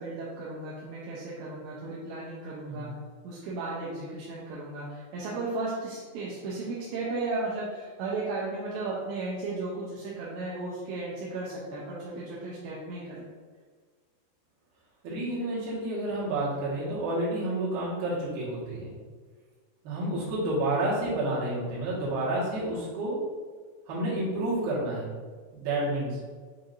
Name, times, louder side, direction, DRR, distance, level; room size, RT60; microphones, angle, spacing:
voice 1, 0.0-2.9 3.2-13.3, right 3 dB, 85° right, -6 dB, 2.6 m, -35 dB
voice 2, 15.0-19.0 19.8-23.2 23.9-25.2 25.5-26.2, right 1 dB, 65° right, -8 dB, 2.7 m, -30 dB
7.7 x 2.6 x 2.5 m, 1.5 s
omnidirectional pair, 5.5 m